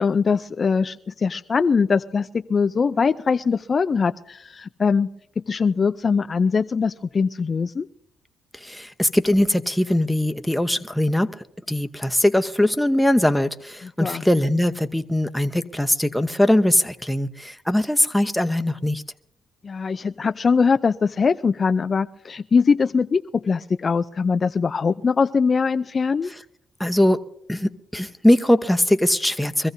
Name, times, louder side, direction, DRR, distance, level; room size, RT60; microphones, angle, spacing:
voice 1, 0.0-5.1 5.4-7.9 13.8-14.2 19.6-26.3, left 5 dB, 40° left, 10 dB, 0.4 m, -22 dB
voice 2, 8.6-11.3 11.7-19.0 26.8-27.2 27.5-29.7, left 1 dB, 5° left, 7 dB, 1.0 m, -21 dB
24.0 x 14.5 x 2.7 m, 0.72 s
supercardioid pair, 70°, 0 cm